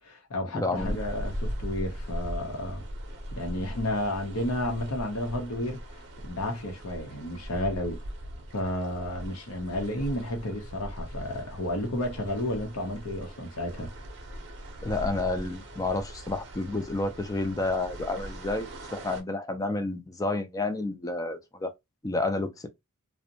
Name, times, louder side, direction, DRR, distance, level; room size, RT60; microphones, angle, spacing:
voice 1, 0.0-2.8 3.3-5.8 6.2-8.0 8.5-13.9, left 1 dB, 75° left, 0.7 m, -32 dB
voice 2, 0.5-1.0 14.8-21.7 22.0-22.7, left 2 dB, 15° left, 0.3 m, -30 dB
sound 1, 0.7-19.2, equal, 55° right, 0.6 m, -39 dB
2.5 x 2.1 x 2.7 m
head